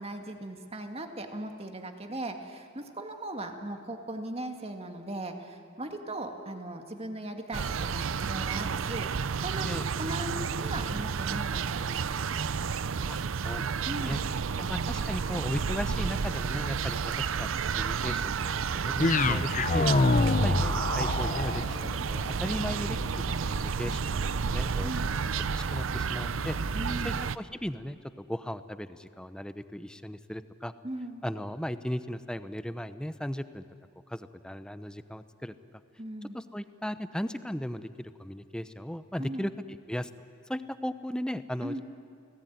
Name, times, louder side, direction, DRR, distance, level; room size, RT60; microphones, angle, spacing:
voice 1, 0.0-9.1 9.4-12.1 13.9-14.3 20.0-20.3 24.8-25.1 26.7-27.2 30.8-31.2 36.0-36.4 39.2-39.5 41.6-41.8, right 1 dB, 30° right, 5 dB, 2.1 m, -38 dB
sound 1, 7.5-27.4, right 6 dB, 80° right, 0.6 m, -31 dB
voice 2, 13.1-14.2 14.6-18.9 19.2-19.9 20.4-23.0 23.4-26.6 27.0-30.7 31.2-33.6 34.1-35.5 36.3-39.5 39.9-40.1 40.5-41.8, equal, 5° left, 12 dB, 0.8 m, -37 dB
sound 2, 19.0-27.2, left 3 dB, 40° left, 0.8 m, -30 dB
29.5 x 18.5 x 9.3 m, 2.3 s
head